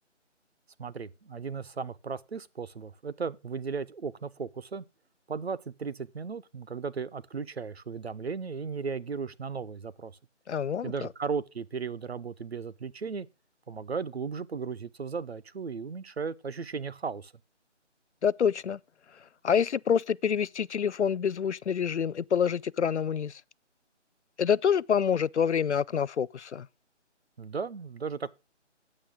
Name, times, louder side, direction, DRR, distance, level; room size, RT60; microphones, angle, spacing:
voice 1, 0.8-4.8 5.3-10.1 10.8-13.3 13.7-17.3 27.4-28.3, right 5 dB, 60° right, 0.7 m, -36 dB
voice 2, 10.5-10.9 18.2-18.8 19.4-23.3 24.4-26.7, left 7 dB, 70° left, 0.5 m, -27 dB
8.9 x 8.6 x 3.7 m
figure-of-eight pair, 170°, 36 cm